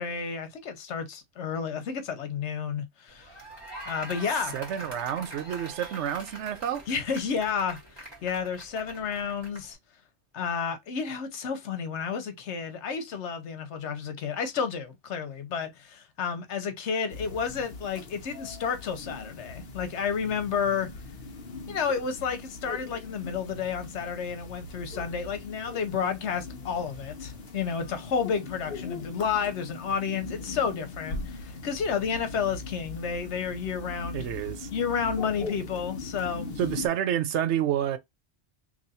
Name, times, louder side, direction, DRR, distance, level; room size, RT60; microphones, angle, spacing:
voice 1, 0.0-3.4 3.8-4.6 6.9-9.8 10.3-20.9 21.7-34.3 34.7-36.6, left 6 dB, 85° left, 1.1 m, -31 dB
sound 1, 3.1-9.7, right 1 dB, 25° right, 1.6 m, -44 dB
voice 2, 4.5-6.8 34.1-34.7 36.6-38.0, right 10 dB, 85° right, 0.9 m, -29 dB
sound 2, 17.1-36.9, left 3 dB, 60° left, 1.0 m, -40 dB
3.0 x 2.5 x 4.0 m
omnidirectional pair, 1.1 m